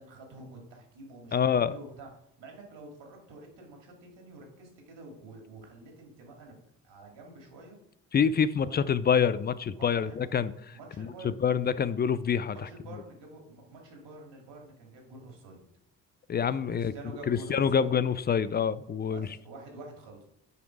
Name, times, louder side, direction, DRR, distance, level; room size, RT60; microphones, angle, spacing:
voice 1, 0.0-2.1 2.4-6.5 6.8-7.8 8.6-8.9 9.8-10.3 10.7-11.4 12.5-15.6 16.7-17.9 19.1-20.2, right 2 dB, 55° right, 1 dB, 2.9 m, -48 dB
voice 2, 1.3-1.8 8.1-10.5 11.0-12.6 16.3-16.9 17.3-19.3, left 7 dB, 25° left, 16 dB, 0.3 m, -26 dB
9.2 x 5.1 x 4.8 m, 0.76 s
hypercardioid pair, 45°, 50 cm